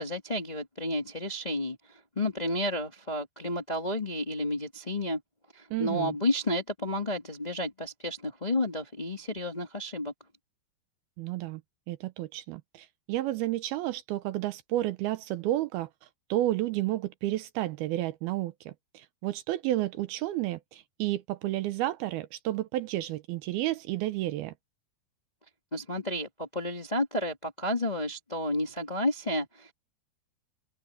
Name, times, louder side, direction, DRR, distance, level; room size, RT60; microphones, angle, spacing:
voice 1, 0.0-1.8 2.1-5.2 5.5-10.1 25.7-29.7, left 1 dB, 20° left, 1.2 m, -31 dB
voice 2, 5.7-6.2 11.2-11.6 11.9-15.9 16.3-24.5, right 15 dB, 75° right, 2.5 m, -31 dB
open air
omnidirectional pair, 4.7 m